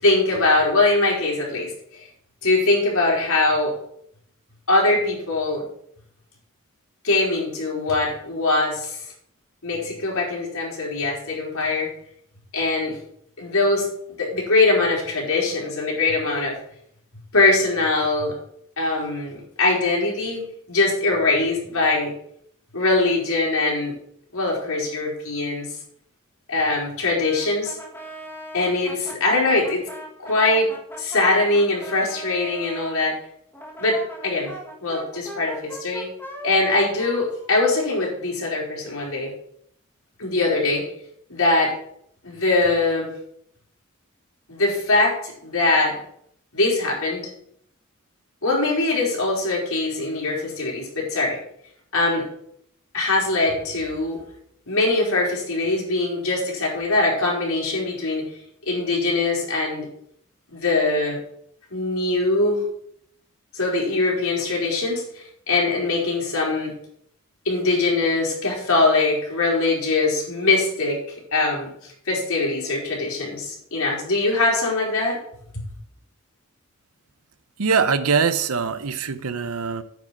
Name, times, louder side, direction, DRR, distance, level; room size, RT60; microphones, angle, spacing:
voice 1, 0.0-1.7 2.4-3.7 4.7-5.6 7.0-9.0 9.6-11.9 12.5-13.0 13.4-13.9 14.2-16.6 17.3-18.3 18.8-22.1 22.7-24.0 24.3-25.7 26.5-27.8 28.5-29.8 30.2-30.7 31.0-33.1 33.8-34.0 34.2-34.5 34.8-36.1 36.4-39.3 40.2-40.8 41.3-41.7 42.2-43.1 44.5-46.0 46.5-47.3 48.4-51.4 51.9-52.3 52.9-54.2 54.7-58.3 58.7-59.9 60.5-61.2 61.7-62.6 63.5-66.7 67.5-71.0 71.3-71.7 72.1-75.2 75.5-75.6, left 2 dB, 75° left, -2 dB, 3.9 m, -22 dB
Brass instrument, 27.2-32.9 33.5-38.3, right 1 dB, 10° left, 1.6 m, -39 dB
voice 2, 77.6-79.8, right 5 dB, 75° right, 13 dB, 0.8 m, -22 dB
9.3 x 5.0 x 7.8 m, 0.69 s
head